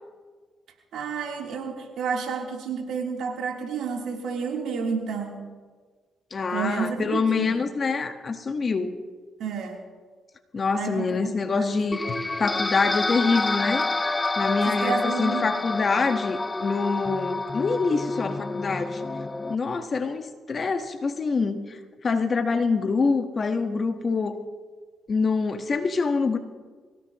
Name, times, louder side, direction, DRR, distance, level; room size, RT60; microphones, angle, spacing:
voice 1, 0.9-5.5 6.5-7.6 9.4-9.8 10.7-11.2 11.5-11.7 14.6-15.7, right 5 dB, 75° right, 0 dB, 3.4 m, -30 dB
voice 2, 6.3-9.0 10.5-13.9 14.4-19.0 19.5-24.4 25.1-26.4, left 4 dB, 45° left, 7 dB, 1.4 m, -25 dB
sound 1, 11.9-19.6, left 2 dB, 20° left, 0.6 m, -28 dB
25.5 x 16.5 x 3.1 m, 1.5 s
cardioid pair, 70°, 0 cm